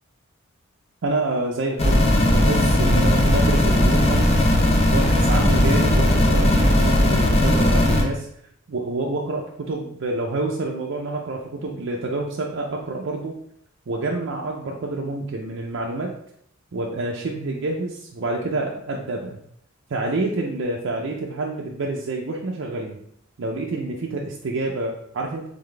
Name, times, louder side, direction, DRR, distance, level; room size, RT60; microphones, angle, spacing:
voice 1, 1.0-4.4 4.9-8.3 8.7-13.4 13.9-16.1 16.7-19.4 19.9-23.0 23.4-25.5, right 2 dB, 60° right, -1 dB, 0.5 m, -28 dB
sound 1, 1.8-8.0, left 1 dB, 30° left, 0.7 m, -17 dB
3.9 x 3.5 x 3.2 m, 0.68 s
head